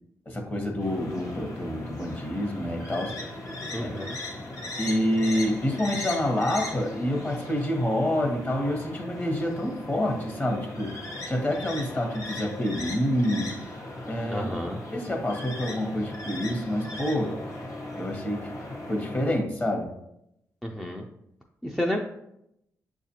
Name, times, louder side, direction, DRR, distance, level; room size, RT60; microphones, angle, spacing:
voice 1, 0.3-3.2 3.8-4.1 4.8-11.0 11.3-13.5 14.1-14.5 14.9-17.4 18.0-18.5 18.9-19.9, left 1 dB, 30° left, 2 dB, 1.0 m, -27 dB
sound 1, 0.8-19.4, left 1 dB, 60° left, 1.0 m, -38 dB
voice 2, 3.7-4.2 14.3-14.8 20.6-21.0 21.6-22.0, left 1 dB, ahead, 1 dB, 0.4 m, -30 dB
6.7 x 2.4 x 2.8 m, 0.81 s
cardioid pair, 70°, 6 cm